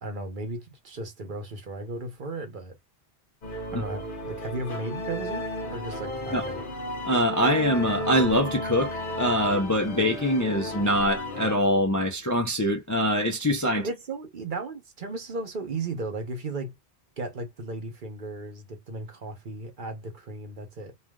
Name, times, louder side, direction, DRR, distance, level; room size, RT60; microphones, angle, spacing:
voice 1, 0.0-2.8 3.7-6.6 13.8-16.8 17.2-20.9, right 2 dB, 50° right, 0.9 m, -35 dB
sound 1, 3.4-11.5, left 1 dB, 50° left, 1.1 m, -33 dB
voice 2, 7.0-13.9, equal, 20° left, 0.5 m, -24 dB
3.2 x 2.4 x 2.2 m
omnidirectional pair, 1.1 m